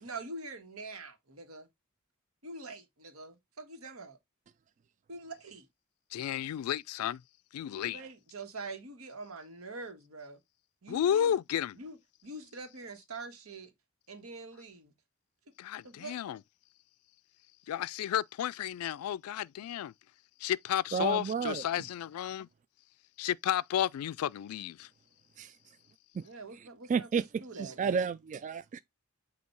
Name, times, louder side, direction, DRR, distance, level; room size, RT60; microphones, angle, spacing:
voice 1, 0.0-1.7 2.4-4.2 5.1-5.7 7.7-10.4 10.8-11.3 11.7-12.0 12.2-13.7 14.1-14.9 15.8-16.4 26.2-28.1, right 3 dB, 75° right, 1.6 m, -45 dB
voice 2, 6.1-7.2 7.5-8.0 10.9-11.8 15.6-16.4 17.7-19.9 20.4-22.5 23.2-24.9, left 10 dB, 90° left, 0.3 m, -32 dB
voice 3, 20.9-21.6 25.4-25.5 26.2-26.3 26.9-27.2 27.6-28.8, right 6 dB, 35° right, 0.3 m, -31 dB
8.2 x 2.8 x 4.5 m
head